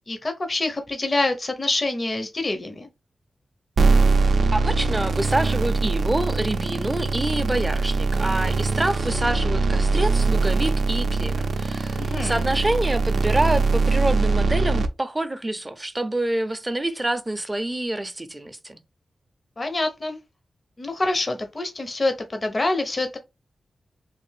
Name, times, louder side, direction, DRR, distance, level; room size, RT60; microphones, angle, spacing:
voice 1, 0.1-2.9 12.0-12.4 19.6-20.2 20.8-23.2, left 2 dB, 35° left, 0.7 m, -26 dB
sound 1, 3.8-14.9, right 4 dB, 70° right, 0.4 m, -22 dB
voice 2, 4.5-18.8, right 1 dB, 15° right, 0.5 m, -27 dB
3.3 x 2.5 x 3.2 m
wide cardioid pair, 90°, 0 cm